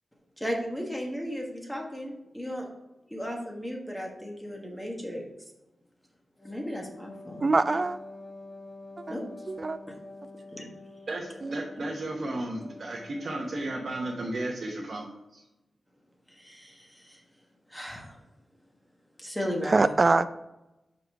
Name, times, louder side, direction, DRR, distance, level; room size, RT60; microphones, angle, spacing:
voice 1, 0.4-2.7 3.1-5.3 6.4-7.5 9.1-9.2 10.5-10.7 16.3-17.2 17.7-18.1 19.2-19.9, equal, 10° left, 0 dB, 1.4 m, -35 dB
Wind instrument woodwind instrument, 6.4-14.5, left 2 dB, 25° left, 1.6 m, -47 dB
voice 2, 7.4-8.0 9.1-9.2 9.5-9.8 11.4-11.6 19.7-20.3, right 3 dB, 35° right, 13 dB, 0.4 m, -23 dB
voice 3, 11.1-15.4, right 1 dB, 55° right, -1 dB, 1.0 m, -34 dB
5.7 x 5.1 x 4.7 m, 0.96 s
wide cardioid pair, 130°, 0 cm